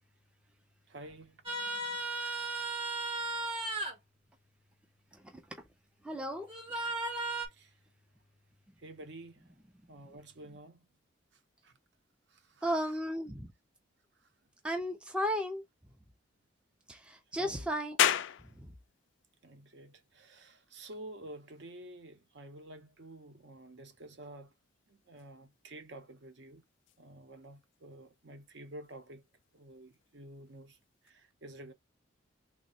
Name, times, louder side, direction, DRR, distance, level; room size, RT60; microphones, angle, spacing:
voice 1, 0.9-1.4 7.5-7.7 8.8-9.6 9.9-10.9 11.6-11.7 12.3-13.0 17.4-17.7 19.4-24.5 24.9-26.6 27.0-29.2 29.5-30.8 31.0-31.7, right 1 dB, 55° right, 0.7 m, -50 dB
sound 1, 1.5-3.9 6.5-7.5, right 2 dB, 25° right, 0.9 m, -35 dB
voice 2, 6.0-6.5 12.6-13.5 14.6-15.6 16.9-18.0 18.6-18.7, equal, 5° right, 0.4 m, -34 dB
sound 2, 18.0-31.1, left 10 dB, 65° left, 0.3 m, -40 dB
3.4 x 2.1 x 4.0 m
head